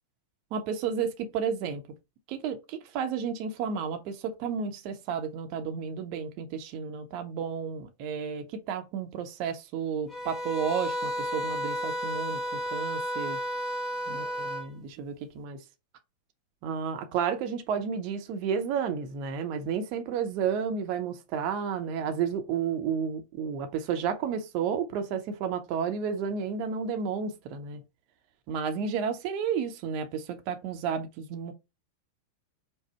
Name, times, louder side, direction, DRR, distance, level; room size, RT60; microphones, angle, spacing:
voice 1, 0.5-1.8 2.3-13.4 14.1-15.6 16.6-27.8 28.5-31.5, right 7 dB, 45° right, 0.7 m, -32 dB
sound 1, 10.1-14.7, equal, 10° left, 0.9 m, -32 dB
4.9 x 2.1 x 4.3 m
figure-of-eight pair, 90°, 0 cm